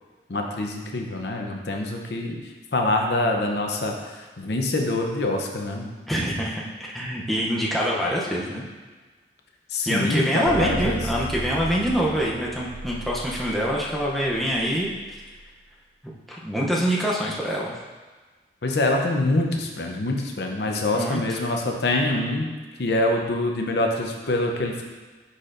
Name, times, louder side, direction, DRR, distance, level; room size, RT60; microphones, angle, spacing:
voice 1, 0.3-2.4 2.7-3.9 4.4-5.9 9.7-11.0 18.6-22.5 22.8-24.8, left 2 dB, 70° left, 2 dB, 0.7 m, -25 dB
voice 2, 6.1-6.6 6.9-8.6 9.9-14.9 16.3-17.8 20.9-21.4, equal, ahead, -5 dB, 0.6 m, -25 dB
sound 1, 10.4-15.4, right 2 dB, 90° right, 0.6 m, -36 dB
9.9 x 4.3 x 2.6 m, 1.4 s
head